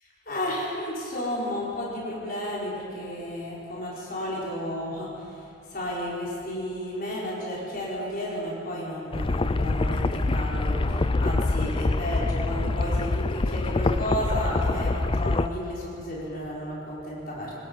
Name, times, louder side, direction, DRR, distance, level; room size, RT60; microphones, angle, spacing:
voice 1, 0.3-5.3 5.7-17.6, equal, 50° left, -6 dB, 5.0 m, -32 dB
sound 1, 9.1-15.5, left 2 dB, 30° left, 0.5 m, -25 dB
25.0 x 19.0 x 5.5 m, 2.9 s
head